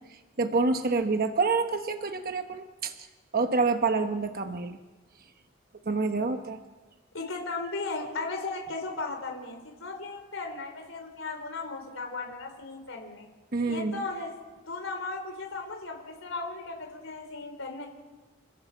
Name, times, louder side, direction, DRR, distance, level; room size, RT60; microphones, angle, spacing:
voice 1, 0.4-2.9 3.3-4.8 5.9-6.6 13.5-13.9, right 4 dB, 50° right, 6 dB, 1.0 m, -27 dB
voice 2, 7.1-13.3 13.6-14.3 14.7-17.9, left 3 dB, 85° left, 3 dB, 3.7 m, -36 dB
28.0 x 15.5 x 7.2 m, 1.3 s
head